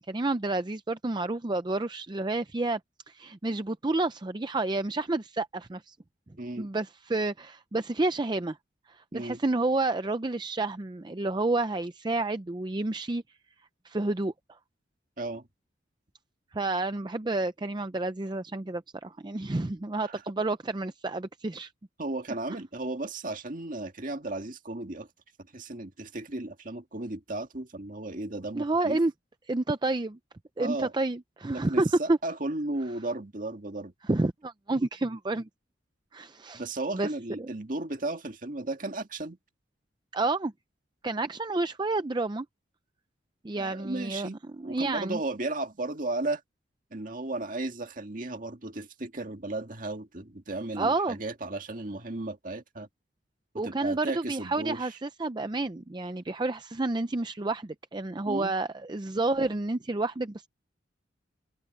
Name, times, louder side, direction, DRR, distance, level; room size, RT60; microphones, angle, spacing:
voice 1, 0.0-2.8 3.1-6.0 6.6-8.6 8.9-13.2 13.8-14.3 16.5-21.7 28.5-29.1 29.5-30.2 30.6-32.2 34.1-35.5 36.1-36.6 36.9-37.1 37.4-37.5 40.1-40.5 41.0-42.5 43.4-44.3 44.6-45.2 50.8-51.2 53.6-60.5, right 2 dB, 25° right, 0.5 m, -29 dB
voice 2, 6.4-6.7 9.1-9.4 15.2-15.5 20.0-20.2 22.0-25.1 25.5-29.0 30.6-30.9 31.5-33.9 36.5-39.4 43.6-44.4 44.6-46.4 46.9-52.9 53.6-55.0 58.3-58.6, right 2 dB, 45° right, 1.9 m, -35 dB
head